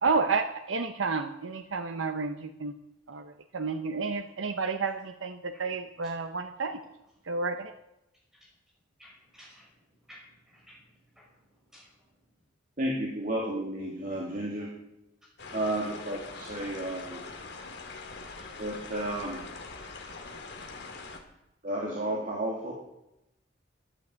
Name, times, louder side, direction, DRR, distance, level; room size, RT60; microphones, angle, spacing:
voice 1, 0.0-2.7 3.1-6.8 7.3-7.7, right 4 dB, 75° right, 7 dB, 0.8 m, -31 dB
voice 2, 9.0-9.7 10.1-10.8 11.2-11.3 11.7-11.9, equal, 5° right, -3 dB, 5.8 m, -54 dB
voice 3, 12.8-14.7 15.5-17.2 18.6-19.5 21.6-22.7, right 1 dB, 45° right, -2 dB, 2.6 m, -32 dB
sound 1, 15.4-21.2, left 4 dB, 60° left, 2.3 m, -43 dB
13.5 x 9.7 x 8.1 m, 0.88 s
head